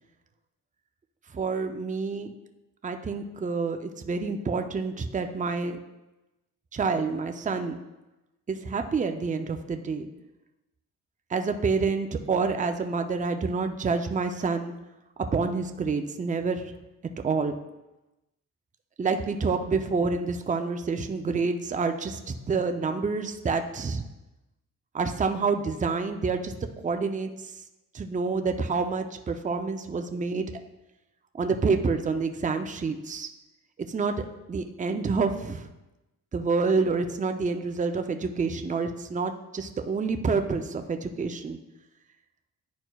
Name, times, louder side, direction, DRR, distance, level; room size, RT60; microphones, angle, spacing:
voice 1, 1.3-2.3 2.8-5.8 6.7-7.8 8.5-10.1 11.3-14.7 15.3-16.7 17.2-17.5 19.0-24.0 24.9-26.5 26.8-27.3 27.9-30.5 31.3-33.3 33.9-35.7 36.3-41.6, right 4 dB, 25° right, 6 dB, 0.5 m, -28 dB
10.5 x 4.3 x 2.3 m, 1.0 s
cardioid pair, 75°, 33 cm